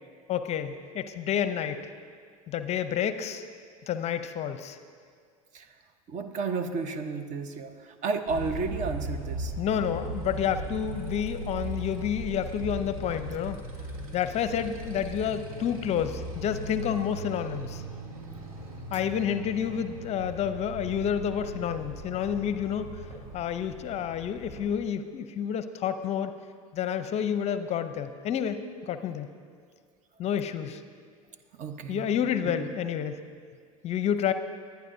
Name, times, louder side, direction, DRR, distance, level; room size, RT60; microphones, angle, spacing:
voice 1, 0.3-1.8 2.5-3.4 3.9-4.8 9.6-13.6 14.1-17.8 18.9-22.9 23.3-26.3 26.7-28.6 28.8-29.3 30.2-30.8 31.9-33.1 33.8-34.3, left 8 dB, 35° left, 11 dB, 0.6 m, -29 dB
voice 2, 6.1-9.5 31.5-32.1 32.6-32.7, right 4 dB, 40° right, 9 dB, 0.9 m, -32 dB
Motorcycle, 8.3-24.7, right 1 dB, 70° right, 1.7 m, -38 dB
sound 1, 16.3-16.6 17.6-17.7 18.6-20.6 20.9-21.0 21.9-22.8 23.1-23.3 23.9-24.7, left 1 dB, 15° right, 2.8 m, -54 dB
22.5 x 9.3 x 2.7 m, 2.1 s
figure-of-eight pair, 80°, 19 cm